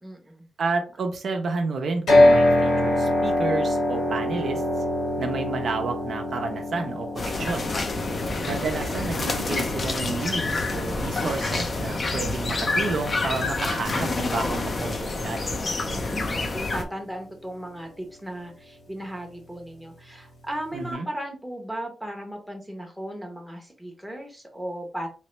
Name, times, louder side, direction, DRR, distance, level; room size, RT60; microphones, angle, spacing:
voice 1, 0.0-0.5 15.8-25.1, right 1 dB, ahead, 2 dB, 0.9 m, -36 dB
voice 2, 0.6-4.6 5.2-7.7 8.5-15.5 20.7-21.1, right 4 dB, 60° right, 4 dB, 0.7 m, -30 dB
sound 1, 2.1-16.2, left 1 dB, 65° left, 1.9 m, -26 dB
sound 2, 7.2-16.8, left 2 dB, 35° left, 0.6 m, -28 dB
3.2 x 3.2 x 3.1 m, 0.35 s
wide cardioid pair, 135°, 0 cm